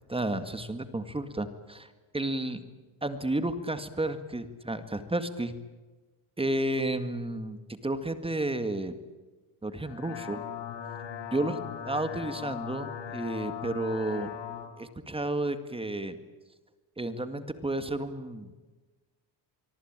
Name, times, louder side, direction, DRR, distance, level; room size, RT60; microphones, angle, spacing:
voice 1, 0.1-1.9 2.1-2.6 3.0-5.5 6.4-8.9 9.6-10.4 11.3-11.6 11.8-14.3 14.8-16.2 17.0-18.6, right 1 dB, 15° right, 10 dB, 2.0 m, -32 dB
sound 1, 9.7-14.7, left 9 dB, 85° left, 4.0 m, -39 dB
25.0 x 23.0 x 9.0 m, 1.3 s
cardioid pair, 115°, 42 cm